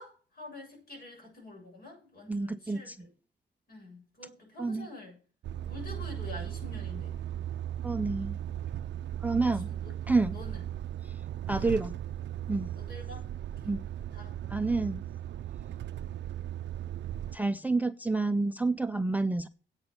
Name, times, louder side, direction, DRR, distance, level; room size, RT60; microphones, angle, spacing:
voice 1, 0.0-2.9 3.7-5.2 5.7-7.2 9.7-9.8 10.3-10.6 12.7-13.7 14.1-14.6 15.6-15.9, left 2 dB, 55° left, 7.6 m, -47 dB
voice 2, 2.3-3.1 4.6-4.9 7.8-8.4 9.2-9.7 10.1-10.4 11.0-11.2 11.5-11.9 12.5-12.7 13.7-13.9 14.5-15.1 17.3-19.5, right 3 dB, 10° right, 0.4 m, -29 dB
Truck, 5.4-17.4, right 11 dB, 75° right, 0.4 m, -37 dB
8.9 x 8.6 x 6.7 m
wide cardioid pair, 135°, 19 cm